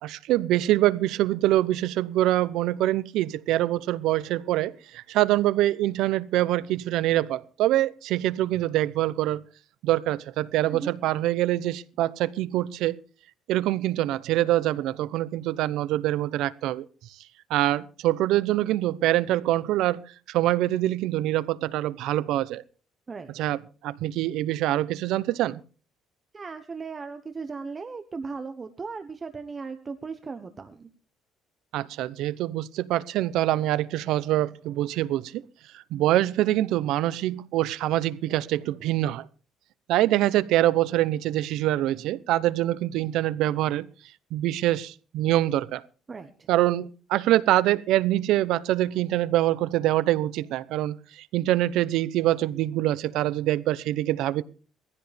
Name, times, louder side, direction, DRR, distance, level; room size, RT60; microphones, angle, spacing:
voice 1, 0.0-9.4 9.8-13.0 13.5-16.8 17.5-22.6 23.3-25.6 31.7-35.4 35.7-39.3 39.9-43.9 44.3-45.8 46.5-54.4, right 14 dB, 70° right, 0.8 m, -25 dB
voice 2, 23.1-23.5 26.3-30.9 46.1-46.5, right 4 dB, 20° right, 0.9 m, -37 dB
19.5 x 15.0 x 3.4 m
cardioid pair, 175°, 0 cm